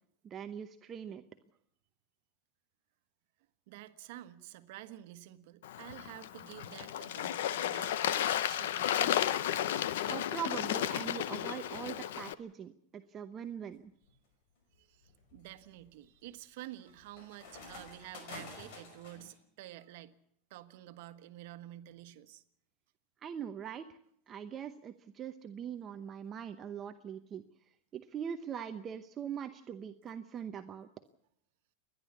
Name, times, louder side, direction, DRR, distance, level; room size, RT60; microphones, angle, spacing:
voice 1, 0.2-1.2 10.1-13.9 23.2-23.9 24.3-27.4 27.9-30.9, right 8 dB, 25° right, 8 dB, 0.8 m, -42 dB
voice 2, 3.7-9.2 14.8-20.1 20.5-22.4, right 14 dB, 65° right, 10 dB, 1.4 m, -50 dB
Bird / Water, 5.6-12.3, left 11 dB, 85° left, 0.8 m, -33 dB
sound 1, 13.8-14.1 14.7-19.3, left 3 dB, 60° left, 5.3 m, -50 dB
29.5 x 11.0 x 8.3 m, 0.69 s
supercardioid pair, 150°, 0 cm